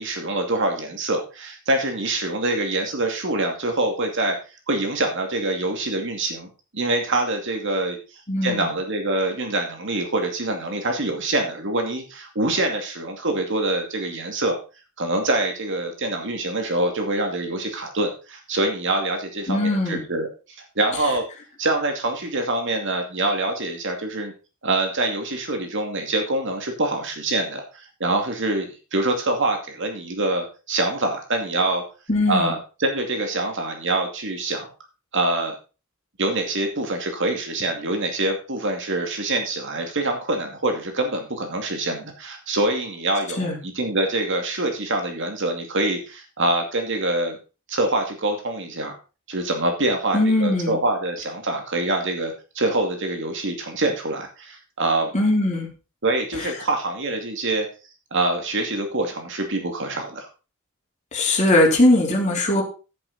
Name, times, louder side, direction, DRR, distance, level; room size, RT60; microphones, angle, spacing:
voice 1, 0.0-4.4 4.7-6.5 6.7-8.0 8.4-14.6 15.0-20.3 20.8-21.2 21.6-24.3 24.6-31.8 32.3-34.7 35.1-35.5 36.2-47.4 47.7-48.9 49.3-55.1 56.0-57.7 58.1-60.3, right 2 dB, 60° right, 4 dB, 2.5 m, -25 dB
voice 2, 8.3-8.7 19.5-20.0 32.1-32.5 43.4-43.6 50.1-50.8 55.1-55.7 56.4-56.5 61.1-62.6, left 1 dB, 35° left, -1 dB, 3.4 m, -20 dB
10.5 x 9.3 x 4.2 m, 0.32 s
head